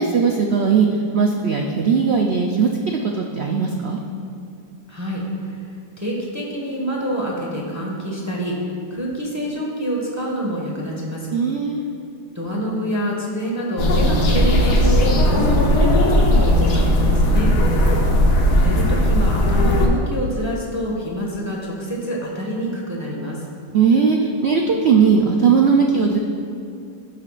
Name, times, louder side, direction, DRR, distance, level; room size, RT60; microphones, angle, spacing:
voice 1, 0.0-4.0 11.3-11.8 16.8-17.4 23.7-26.2, right 5 dB, 75° right, 1 dB, 0.5 m, -18 dB
voice 2, 4.9-5.6 6.0-11.3 12.3-17.5 18.6-23.4, equal, 10° right, -4 dB, 1.2 m, -26 dB
sound 1, 13.8-19.9, left 1 dB, 70° left, 1.6 m, -16 dB
17.5 x 5.9 x 2.5 m, 2.5 s
omnidirectional pair, 1.8 m